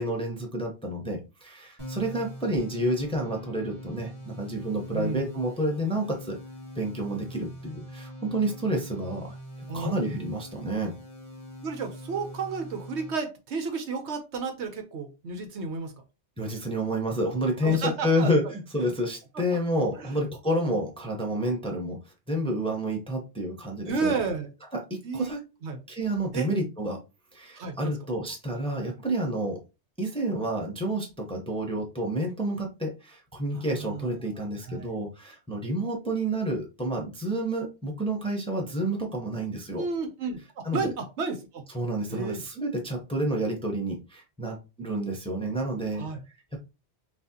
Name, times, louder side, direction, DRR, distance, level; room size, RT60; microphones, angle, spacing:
voice 1, 0.0-6.4 6.7-9.4 9.7-10.9 16.4-22.0 22.3-24.1 24.7-25.4 25.9-27.0 27.3-29.6 30.0-39.8 40.6-40.9 41.7-46.1, right 1 dB, 5° left, 1 dB, 0.8 m, -29 dB
sound 1, 1.8-13.1, equal, 15° right, 2.1 m, -43 dB
voice 2, 4.9-5.3 9.7-10.0 11.6-15.9 17.6-18.5 19.3-19.4 20.0-20.2 20.5-20.6 23.8-24.5 25.0-25.3 25.6-25.8 26.3-26.5 27.5-27.9 33.5-34.2 34.6-34.9 39.8-41.6 42.1-42.4 45.9-46.2, right 4 dB, 80° right, 6 dB, 1.1 m, -32 dB
6.0 x 2.4 x 2.8 m, 0.28 s
omnidirectional pair, 1.2 m